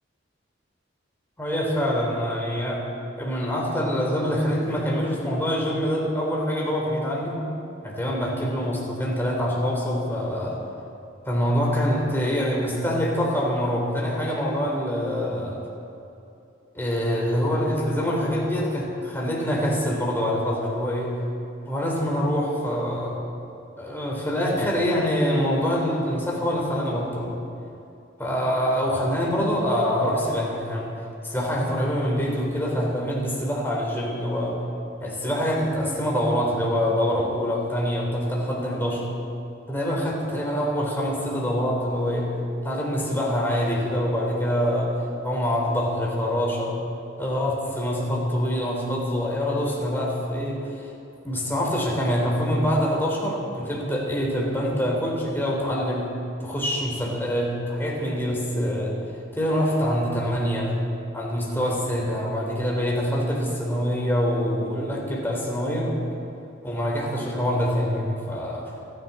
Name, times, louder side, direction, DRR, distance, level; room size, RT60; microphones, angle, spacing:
voice 1, 1.4-2.9 3.2-7.4 7.8-10.6 11.3-15.6 16.7-21.1 21.7-23.1 23.8-27.3 28.2-30.9 31.2-34.6 35.0-39.0 39.7-42.3 42.6-44.9 45.2-46.8 47.2-50.9 51.2-58.9 59.4-60.7 61.1-65.9 66.6-68.7, equal, 10° left, -3 dB, 3.8 m, -25 dB
29.0 x 11.0 x 4.3 m, 2.8 s
head